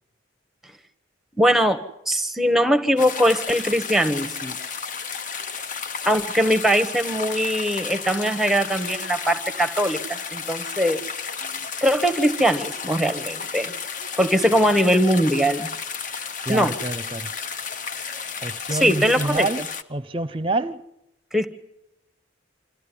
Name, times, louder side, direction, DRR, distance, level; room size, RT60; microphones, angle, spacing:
voice 1, 1.4-1.8 2.1-4.6 6.0-11.0 11.8-13.7 14.2-15.7 16.5-16.7 18.7-19.5 21.3-21.5, equal, ahead, 1.2 m, -21 dB
sound 1, 3.0-19.8, left 6 dB, 40° left, 1.0 m, -32 dB
voice 2, 16.4-17.3 18.4-20.8, right 2 dB, 25° right, 0.8 m, -27 dB
26.5 x 14.0 x 9.9 m
head